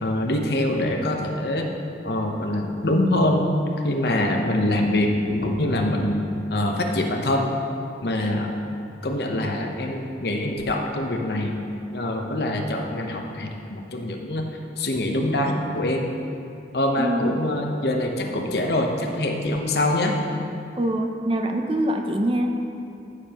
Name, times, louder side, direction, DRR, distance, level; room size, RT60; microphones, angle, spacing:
voice 1, 0.0-1.7 2.0-3.5 3.8-6.2 6.5-7.5 8.0-8.6 9.0-11.7 11.9-14.4 14.8-16.1 16.7-20.2, left 1 dB, 65° left, 2 dB, 0.9 m, -24 dB
voice 2, 17.0-17.5 20.7-22.5, right 1 dB, 30° right, 4 dB, 0.5 m, -24 dB
14.5 x 6.8 x 3.0 m, 2.7 s
head